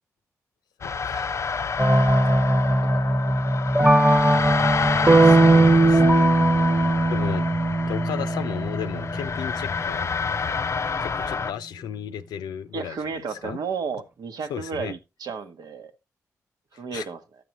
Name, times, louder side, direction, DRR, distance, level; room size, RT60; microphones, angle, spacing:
voice 1, 0.8-1.3 5.2-6.5 7.1-7.4 7.9-10.1 11.0-13.6 14.5-15.0 16.9-17.1, left 9 dB, 90° left, 0.6 m, -35 dB
sound 1, 0.8-11.5, left 5 dB, 45° left, 0.4 m, -28 dB
sound 2, 1.8-10.0, equal, 10° right, 1.2 m, -23 dB
sound 3, 5.1-9.1, right 3 dB, 30° right, 0.6 m, -19 dB
voice 2, 12.7-15.9 16.7-17.2, right 5 dB, 80° right, 1.1 m, -33 dB
12.0 x 7.7 x 2.9 m
supercardioid pair, 45°, 7 cm